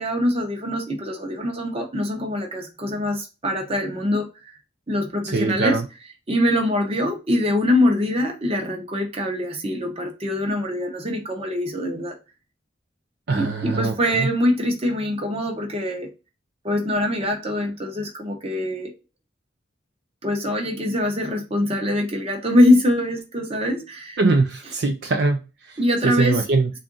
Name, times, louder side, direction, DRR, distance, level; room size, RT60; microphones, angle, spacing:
voice 1, 0.0-4.5 4.9-5.8 6.3-12.1 13.3-16.1 16.6-18.9 20.2-24.2 25.8-26.4, left 1 dB, 30° right, 0.8 m, -23 dB
voice 2, 5.3-5.8 13.3-14.3 24.2-25.8 26.0-26.7, right 3 dB, 60° right, 0.4 m, -22 dB
3.5 x 2.5 x 3.8 m
head